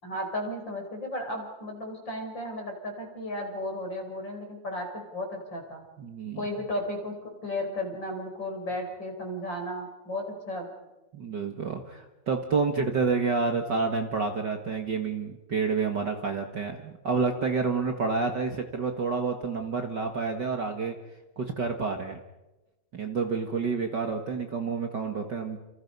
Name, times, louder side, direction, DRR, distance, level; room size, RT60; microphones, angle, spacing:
voice 1, 0.0-5.8 6.3-7.1 7.4-10.7, left 1 dB, 25° left, 3 dB, 5.5 m, -34 dB
voice 2, 6.0-6.4 11.1-20.9 21.4-22.2 22.9-25.6, right 4 dB, 85° right, 4 dB, 0.9 m, -29 dB
29.5 x 29.0 x 5.5 m, 1.0 s
omnidirectional pair, 4.7 m